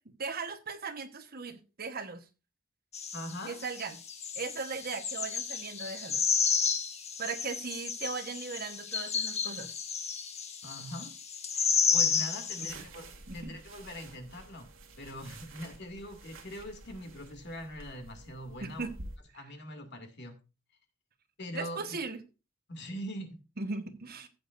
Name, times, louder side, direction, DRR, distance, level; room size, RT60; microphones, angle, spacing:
voice 1, 0.2-2.2 3.5-4.0 4.3-6.2 7.2-9.7 12.6-12.8 13.3-13.5 18.6-18.9 21.5-22.2 23.6-24.3, right 4 dB, 50° right, 9 dB, 1.2 m, -38 dB
sound 1, 2.9-12.7, left 6 dB, 35° left, 1.4 m, -32 dB
voice 2, 3.1-3.6 10.6-11.1 11.5-14.7 15.0-18.9 19.3-20.4 21.4-22.0 22.7-23.4, equal, 60° left, 5 dB, 2.4 m, -42 dB
sound 2, 12.7-19.2, right 2 dB, 90° right, 2.4 m, -50 dB
14.5 x 8.6 x 2.6 m, 0.30 s
head